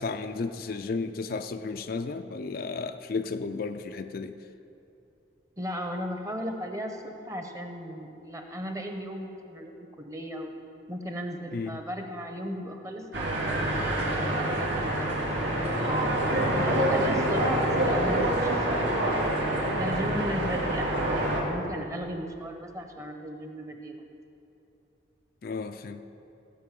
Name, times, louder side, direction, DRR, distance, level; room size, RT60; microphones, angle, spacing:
voice 1, 0.0-4.3 11.5-11.7 25.4-26.0, left 4 dB, 50° left, 8 dB, 0.4 m, -33 dB
voice 2, 5.6-10.5 10.9-13.6 13.9-19.3 19.7-24.0, equal, 15° right, 4 dB, 0.9 m, -36 dB
sound 1, 13.1-21.4, right 1 dB, 80° right, 2.4 m, -26 dB
16.0 x 5.5 x 7.4 m, 2.8 s
head